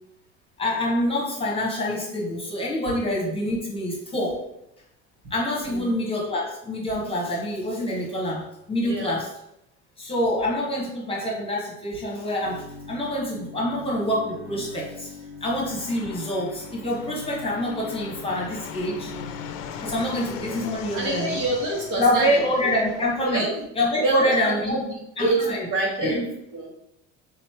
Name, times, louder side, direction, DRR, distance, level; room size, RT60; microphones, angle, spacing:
voice 1, 0.6-4.4 5.3-9.3 10.0-15.2 15.4-19.1 19.8-21.4 22.0-23.4 23.8-24.8 25.2-25.6 26.0-26.2, left 1 dB, 15° left, -3 dB, 1.0 m, -26 dB
voice 2, 8.8-9.1 19.7-19.9 20.9-22.4 23.2-23.7 24.0-24.8 25.2-26.2 26.5-26.7, right 2 dB, 65° right, -3 dB, 1.8 m, -26 dB
Bowed string instrument, 12.4-19.9, left 3 dB, 40° right, 0.8 m, -42 dB
Fixed-wing aircraft airplane, 15.6-23.3, left 7 dB, 90° left, 0.6 m, -39 dB
3.8 x 3.2 x 4.4 m, 0.82 s
cardioid pair, 145°, 33 cm